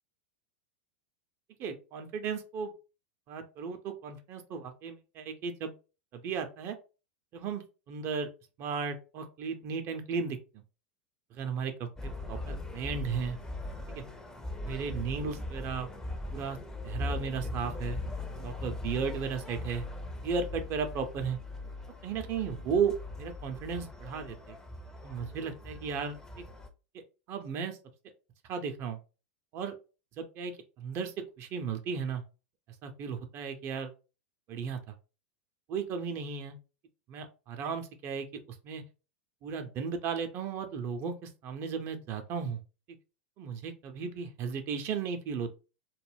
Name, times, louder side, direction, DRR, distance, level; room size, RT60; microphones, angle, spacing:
voice 1, 1.6-2.7 3.3-5.7 6.1-6.8 7.3-8.3 8.6-10.4 11.3-13.4 13.9-14.0 14.6-15.9 16.3-16.6 16.8-18.0 18.4-19.8 20.2-21.4 22.0-24.5 25.0-26.4 26.9-27.0 27.3-27.8 28.5-29.0 29.5-29.8 30.2-32.2 32.8-33.9 34.5-34.8 35.7-36.6 37.1-38.8 39.4-42.6 43.4-45.6, right 6 dB, 40° right, 7 dB, 0.5 m, -35 dB
sound 1, 11.9-26.7, left 2 dB, 10° left, 0.5 m, -40 dB
2.3 x 2.1 x 3.3 m, 0.32 s
hypercardioid pair, 95°, 6 cm